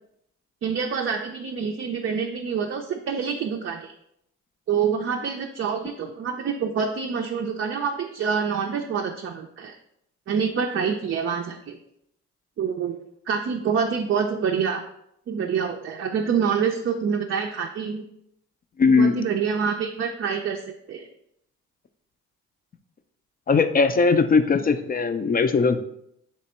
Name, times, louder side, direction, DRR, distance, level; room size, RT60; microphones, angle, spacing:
voice 1, 0.6-3.9 4.7-9.8 10.3-11.8 12.6-13.0 13.3-14.8 15.3-18.0 18.9-20.6 20.9-21.1, right 6 dB, 45° right, 3 dB, 0.5 m, -26 dB
voice 2, 18.8-19.1 23.5-25.8, left 4 dB, 30° left, 9 dB, 0.4 m, -19 dB
3.3 x 3.0 x 4.2 m, 0.75 s
supercardioid pair, 55°, 30 cm